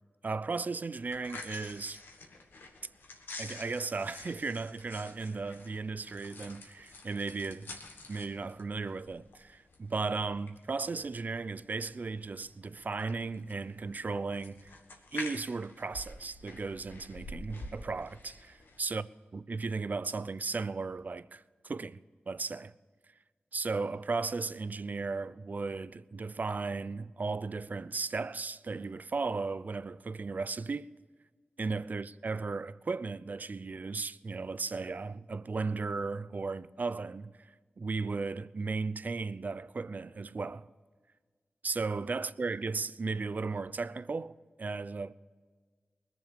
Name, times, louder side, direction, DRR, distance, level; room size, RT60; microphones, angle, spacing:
voice 1, 0.2-2.0 3.4-7.7 8.1-14.7 15.1-19.0 19.3-22.0 22.3-22.7 23.5-30.9 31.6-37.5 37.8-40.7 41.6-45.1, right 4 dB, 55° right, 0.5 m, -35 dB
sound 1, 1.0-18.8, left 2 dB, 85° left, 1.6 m, -48 dB
20.5 x 7.1 x 7.2 m
cardioid pair, 45°, 4 cm